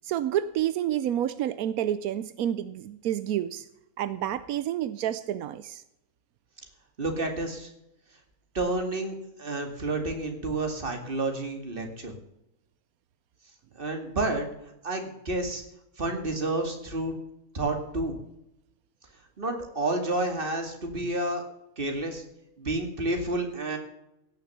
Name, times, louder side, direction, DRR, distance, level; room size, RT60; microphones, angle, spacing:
voice 1, 0.0-3.6 4.0-5.8, right 11 dB, 85° right, 14 dB, 1.1 m, -29 dB
voice 2, 7.0-7.7 8.5-12.1 13.8-14.5 14.8-15.6 16.0-17.1 17.5-18.1 19.4-21.4 21.8-22.2 22.6-23.8, right 2 dB, 40° right, 4 dB, 2.4 m, -30 dB
17.0 x 6.7 x 6.9 m, 0.84 s
omnidirectional pair, 1.5 m